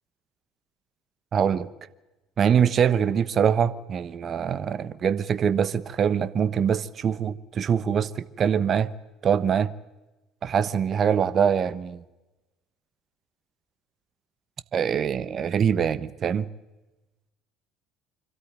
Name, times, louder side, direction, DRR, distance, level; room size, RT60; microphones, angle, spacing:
voice 1, 1.3-1.7 2.4-8.9 9.2-9.7 10.4-12.0 14.7-16.5, right 7 dB, 45° right, 1.1 m, -23 dB
26.0 x 13.0 x 9.4 m
hypercardioid pair, 60°, 0 cm